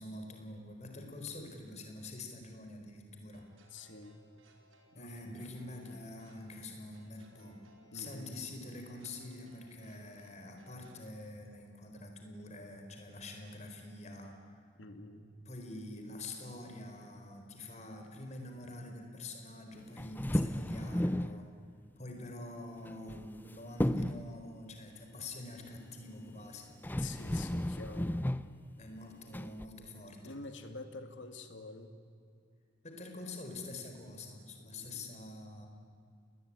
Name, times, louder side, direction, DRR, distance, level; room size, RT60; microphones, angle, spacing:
voice 1, 0.0-3.4 4.9-7.6 7.9-14.6 15.4-21.5 22.0-26.7 28.8-30.3 32.8-35.7, left 2 dB, 35° left, 4 dB, 4.4 m, -46 dB
sound 1, 3.3-11.1, right 1 dB, 90° right, 4.5 m, -65 dB
voice 2, 3.7-4.2 4.9-5.2 7.9-8.5 14.8-15.3 27.0-28.2 30.2-31.9 34.8-35.2, left 3 dB, 75° left, 7 dB, 2.5 m, -47 dB
sound 2, 20.0-21.4 22.9-23.5 23.8-24.3 26.3-26.4 26.8-28.5 29.3-29.7, left 1 dB, 10° left, 0.6 m, -33 dB
30.0 x 20.0 x 9.8 m, 2.3 s
head